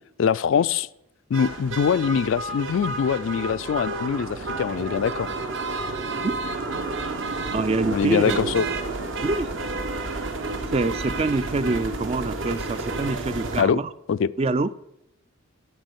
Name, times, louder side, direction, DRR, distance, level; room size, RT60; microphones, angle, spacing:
voice 1, 0.2-0.9 1.3-5.3 7.9-8.7 13.6-13.8 14.1-14.3, left 7 dB, 65° left, 17 dB, 0.3 m, -23 dB
sound 1, 1.3-13.6, right 3 dB, 65° right, 1.1 m, -31 dB
sound 2, 3.2-10.0, right 3 dB, 85° right, 1.0 m, -44 dB
voice 2, 7.5-8.5 9.2-9.5 10.7-13.9 14.4-14.7, right 3 dB, 30° right, 15 dB, 0.3 m, -25 dB
10.5 x 4.5 x 8.0 m, 0.81 s
head